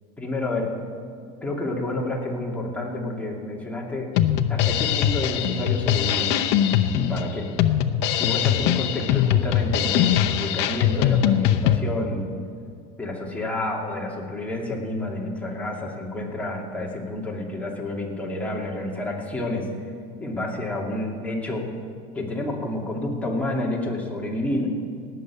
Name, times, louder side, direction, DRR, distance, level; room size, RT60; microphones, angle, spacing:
voice 1, 0.2-0.7 1.4-4.1 4.5-6.3 6.9-7.5 8.2-12.3 13.0-19.6 20.2-21.7 22.1-24.7, left 2 dB, 5° left, -3 dB, 2.6 m, -29 dB
Drum kit, 4.2-11.8, left 10 dB, 65° left, 0.8 m, -21 dB
18.0 x 6.8 x 8.3 m, 2.4 s
supercardioid pair, 125°, 19 cm